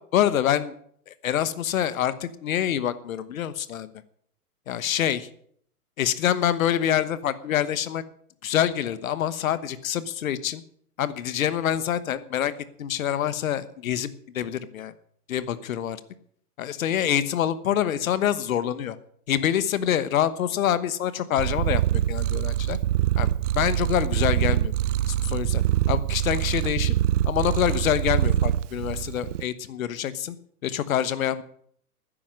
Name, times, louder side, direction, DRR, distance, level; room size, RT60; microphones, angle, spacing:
voice 1, 0.1-0.7 1.1-3.9 4.7-5.3 6.0-8.0 8.4-10.6 11.0-12.5 12.8-14.1 14.3-14.9 15.3-16.0 16.6-19.0 19.3-22.8 23.2-24.7 25.3-25.6 25.9-26.9 27.2-30.4 30.6-31.4, left 10 dB, 60° left, 15 dB, 1.2 m, -26 dB
Purr, 21.4-29.4, right 12 dB, 55° right, 0.5 m, -24 dB
13.0 x 10.0 x 6.2 m, 0.64 s
figure-of-eight pair, 110°, 45 cm